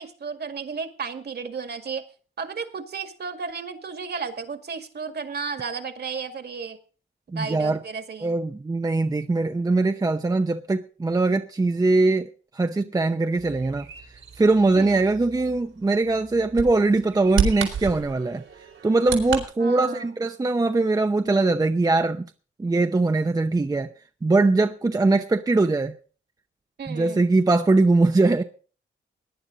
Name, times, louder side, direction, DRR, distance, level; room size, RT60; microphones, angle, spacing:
voice 1, 0.0-2.0 2.4-6.8 7.3-8.4 14.8-15.0 19.6-20.1 26.8-27.3, right 5 dB, 55° right, 2.0 m, -33 dB
voice 2, 7.3-7.8 8.2-13.9 14.4-18.4 18.8-22.3 22.6-23.9 24.2-25.9 26.9-28.4, right 3 dB, 20° right, 0.7 m, -21 dB
Bird vocalization bird call bird song, 13.4-19.4, right 6 dB, 90° right, 4.1 m, -32 dB
18.0 x 10.5 x 3.9 m
wide cardioid pair, 140°, 20 cm